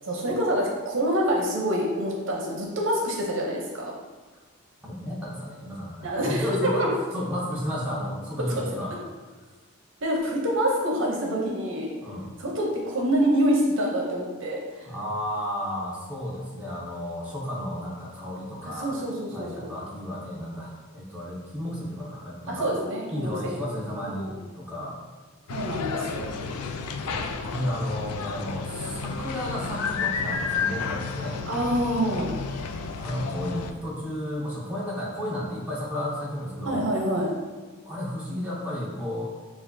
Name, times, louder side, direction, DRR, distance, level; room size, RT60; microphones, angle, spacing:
voice 1, 0.0-3.8 6.0-6.9 10.0-11.9 12.4-14.9 18.6-19.7 22.5-23.6 24.0-24.3 25.5-26.5 31.5-32.3 36.7-37.3, equal, 60° right, -1 dB, 0.7 m, -26 dB
voice 2, 4.8-9.0 12.0-12.3 14.9-18.9 19.3-22.8 23.1-24.3 24.6-25.0 27.1-31.4 33.0-36.9 37.8-39.2, equal, 5° right, -7 dB, 0.8 m, -32 dB
sound 1, 25.5-33.7, left 5 dB, 85° left, 0.4 m, -31 dB
6.7 x 2.4 x 2.6 m, 1.4 s
head